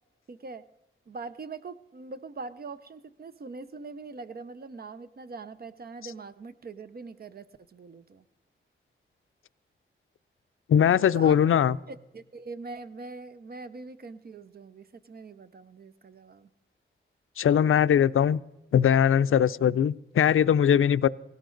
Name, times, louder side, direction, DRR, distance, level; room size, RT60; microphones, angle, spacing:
voice 1, 0.3-0.6 1.1-8.2 11.1-11.4 11.9-16.5, right 4 dB, 45° right, 13 dB, 0.7 m, -42 dB
voice 2, 10.7-11.8 17.4-18.4 18.7-21.1, left 9 dB, 80° left, 15 dB, 0.5 m, -21 dB
18.0 x 17.0 x 3.9 m, 0.95 s
wide cardioid pair, 155°, 21 cm